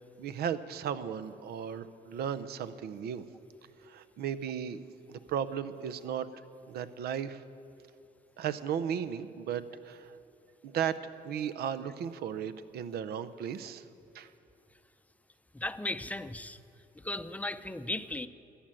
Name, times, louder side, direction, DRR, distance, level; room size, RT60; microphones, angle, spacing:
voice 1, 0.2-3.2 3.8-4.8 5.1-6.3 6.7-7.4 8.4-10.2 10.6-11.0 11.2-13.8 14.1-14.3, right 8 dB, 75° right, 14 dB, 0.7 m, -35 dB
voice 2, 15.5-16.6 17.0-18.3, left 1 dB, 10° left, 12 dB, 0.6 m, -36 dB
14.0 x 8.7 x 9.0 m, 2.9 s
cardioid pair, 85°, 16 cm